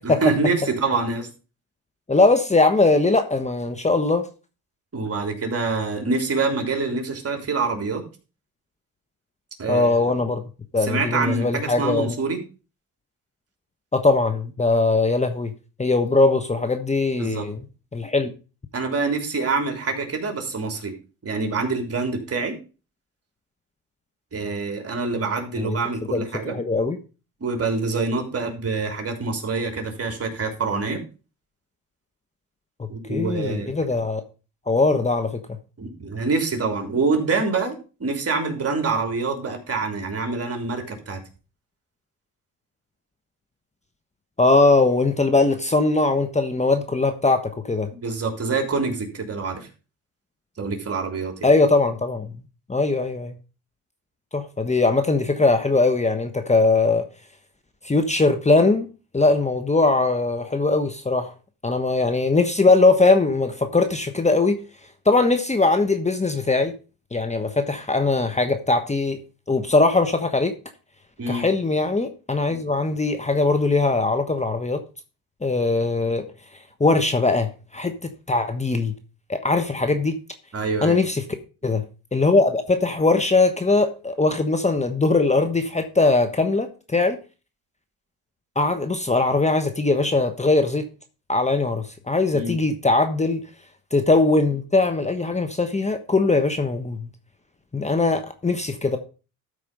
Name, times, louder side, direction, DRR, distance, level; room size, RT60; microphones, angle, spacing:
voice 1, 0.0-1.3 4.9-8.0 9.6-10.1 10.8-12.4 17.2-17.5 18.7-20.9 21.2-22.5 24.3-26.6 27.4-31.0 32.9-33.8 35.8-41.2 48.0-49.7 50.6-51.5 71.2-71.4 80.5-81.0 92.3-92.5, right 4 dB, 40° right, 3.6 m, -26 dB
voice 2, 2.1-4.3 9.7-12.2 13.9-15.5 15.8-17.6 17.9-18.3 25.6-25.8 26.1-27.0 32.8-34.2 34.7-35.4 44.4-47.9 51.4-52.3 52.7-53.3 54.3-57.0 57.8-58.9 59.1-61.3 61.6-64.6 65.0-66.7 67.1-69.2 69.5-70.5 71.3-74.8 75.4-76.3 76.8-78.9 79.3-80.2 80.8-81.2 81.6-81.8 82.1-87.2 88.5-90.9 91.3-93.4 93.9-97.1 97.7-99.0, left 3 dB, 20° left, 1.2 m, -20 dB
13.0 x 5.0 x 5.4 m
cardioid pair, 80°, 38 cm